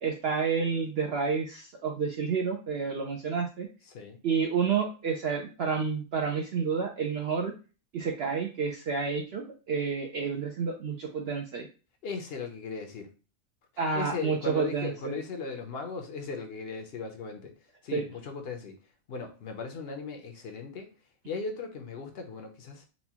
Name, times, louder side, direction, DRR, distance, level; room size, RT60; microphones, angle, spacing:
voice 1, 0.0-3.7 4.2-7.5 7.9-11.7 13.8-15.2 17.9-18.0, right 5 dB, 65° right, 2 dB, 0.6 m, -30 dB
voice 2, 3.9-4.2 12.0-13.1 13.9-20.9 21.2-22.9, left 4 dB, 60° left, 4 dB, 0.7 m, -38 dB
4.1 x 2.2 x 2.8 m, 0.34 s
omnidirectional pair, 1.5 m